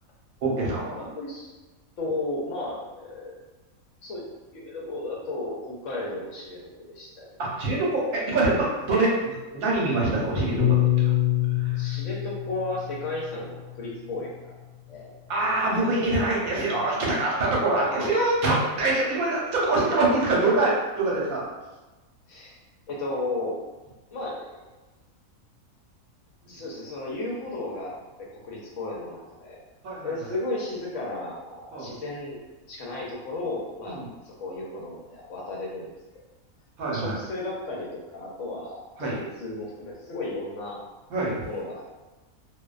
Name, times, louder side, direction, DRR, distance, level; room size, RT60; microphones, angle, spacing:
voice 1, 0.4-1.0 7.4-10.8 11.6-11.8 15.3-21.5 29.8-30.1 31.7-31.9 33.8-34.1 36.8-37.2 39.0-39.2 41.1-41.5, right 2 dB, 80° right, -4 dB, 1.1 m, -24 dB
voice 2, 0.9-1.5 2.0-3.4 4.0-4.2 4.5-6.6 6.9-7.3 11.8-14.5 14.9-15.1 17.7-18.3 22.3-22.6 22.9-23.6 24.1-24.6 26.5-27.9 28.3-29.6 30.0-32.4 32.7-34.0 34.2-35.9 36.9-40.8 41.5-42.0, left 2 dB, 70° left, -3 dB, 0.8 m, -34 dB
Piano, 10.6-15.0, left 13 dB, 30° left, 0.9 m, -26 dB
2.5 x 2.1 x 2.3 m, 1.1 s
omnidirectional pair, 1.5 m